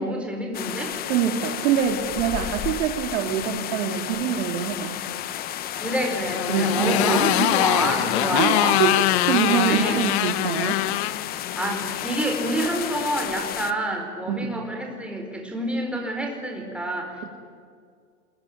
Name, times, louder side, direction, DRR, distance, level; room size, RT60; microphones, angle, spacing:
voice 1, 0.0-0.9 5.7-8.8 9.3-10.0 11.6-17.1, right 1 dB, ahead, 2 dB, 4.6 m, -28 dB
sound 1, 0.5-13.7, left 11 dB, 20° left, 0.9 m, -32 dB
voice 2, 1.1-5.0 6.5-7.5 8.4-10.8 14.3-14.5, right 8 dB, 55° right, 3 dB, 2.8 m, -25 dB
Motorcycle, 5.8-12.2, left 15 dB, 45° left, 1.2 m, -24 dB
26.0 x 22.5 x 9.3 m, 2.1 s
supercardioid pair, 150°, 46 cm